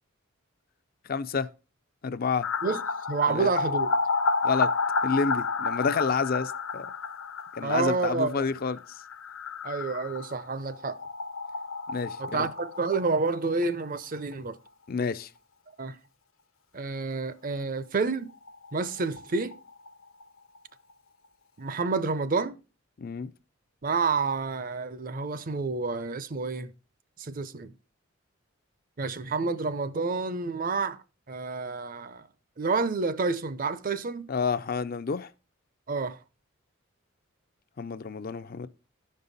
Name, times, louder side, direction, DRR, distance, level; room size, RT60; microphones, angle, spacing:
voice 1, 1.1-1.5 2.0-2.5 3.3-3.5 4.4-4.7 5.0-6.9 7.6-8.8 11.9-12.5 14.9-15.3 23.0-23.3 34.3-35.3 37.8-38.7, left 5 dB, 45° left, 0.4 m, -29 dB
sound 1, 2.4-14.0 14.3-14.4 14.7-14.8 17.8-17.9 18.1-18.2 18.5-20.2 20.6-20.7, left 4 dB, 85° left, 0.7 m, -31 dB
voice 2, 3.1-3.9 7.6-8.5 9.6-11.0 12.2-14.6 15.8-16.0 16.7-18.3 18.7-19.5 21.6-22.6 23.8-26.7 27.2-27.7 29.0-32.3 32.6-34.3 35.9-36.2, right 4 dB, 40° right, 0.6 m, -29 dB
13.0 x 5.4 x 4.0 m
head